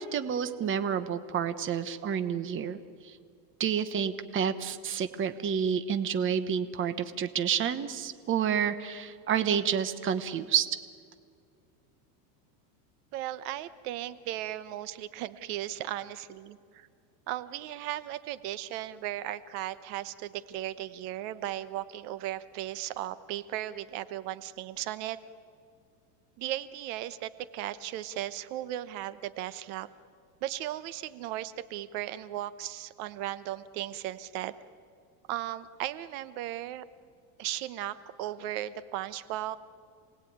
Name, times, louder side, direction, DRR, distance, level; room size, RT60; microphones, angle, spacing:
voice 1, 0.0-2.8 3.0-3.2 3.6-10.7, right 8 dB, 25° right, 11 dB, 1.0 m, -29 dB
voice 2, 13.1-16.9 17.3-25.2 26.4-29.9 30.4-34.6 35.3-36.8 37.4-39.6, right 13 dB, 65° right, 14 dB, 1.1 m, -36 dB
27.5 x 19.0 x 9.4 m, 2.2 s
supercardioid pair, 145°, 49 cm